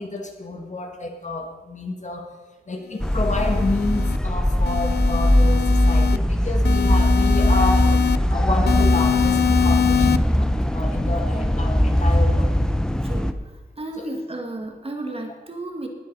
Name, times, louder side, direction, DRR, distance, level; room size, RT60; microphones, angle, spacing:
voice 1, 0.0-2.3 2.7-12.6 14.0-14.1, left 2 dB, 45° left, 3 dB, 2.0 m, -29 dB
sound 1, 3.0-4.2 4.7-6.2 6.6-8.2 8.7-10.2, left 10 dB, 75° left, 0.5 m, -24 dB
sound 2, 3.0-13.3, equal, 5° left, 0.7 m, -20 dB
voice 2, 13.0-13.3 13.8-15.9, right 2 dB, 35° right, 2 dB, 2.2 m, -33 dB
19.0 x 7.8 x 5.6 m, 1.2 s
wide cardioid pair, 90°, 17 cm